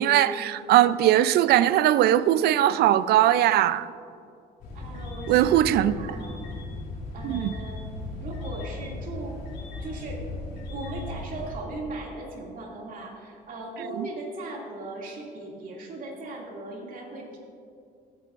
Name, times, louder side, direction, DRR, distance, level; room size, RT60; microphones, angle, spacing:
voice 1, 0.0-3.9 5.3-6.0 7.2-7.5 14.0-14.1, right 12 dB, 70° right, 0.4 m, -20 dB
sound 1, 4.6-11.5, left 2 dB, 75° left, 2.7 m, -37 dB
voice 2, 4.7-6.5 7.1-7.8 8.2-9.3 9.8-10.3 10.5-17.4, right 2 dB, 55° right, 2.4 m, -38 dB
16.5 x 10.5 x 2.5 m
cardioid pair, 110°, 17 cm